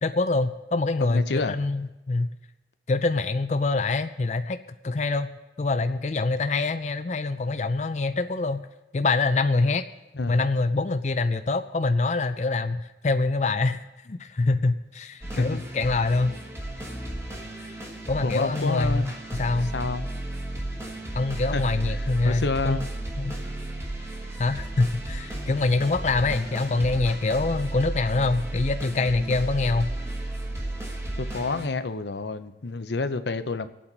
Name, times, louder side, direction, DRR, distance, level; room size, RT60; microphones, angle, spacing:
voice 1, 0.0-2.3 2.9-4.6 4.8-5.3 5.6-8.6 8.9-9.8 10.3-16.4 18.1-19.1 19.4-19.7 21.1-22.8 23.2-23.4 24.4-29.9, left 3 dB, 40° left, 9 dB, 0.5 m, -25 dB
voice 2, 1.0-1.6 10.1-10.3 15.4-15.7 18.2-19.0 19.6-20.1 21.5-21.6 21.9-22.9 31.2-33.7, left 3 dB, 75° left, 11 dB, 0.8 m, -29 dB
sound 1, 15.2-31.7, right 1 dB, 15° right, 1.5 m, -34 dB
24.0 x 8.6 x 4.0 m, 1.0 s
head